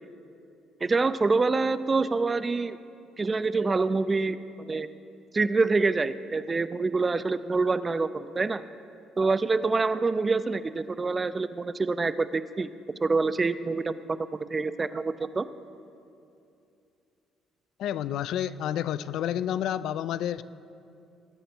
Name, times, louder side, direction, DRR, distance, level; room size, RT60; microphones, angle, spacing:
voice 1, 0.8-2.8 3.2-4.9 5.3-8.6 9.2-12.7 13.0-15.5, right 3 dB, 20° right, 14 dB, 0.3 m, -26 dB
voice 2, 17.8-20.4, left 10 dB, 65° left, 16 dB, 0.3 m, -30 dB
20.0 x 9.3 x 4.3 m, 2.6 s
cardioid pair, 155°, 0 cm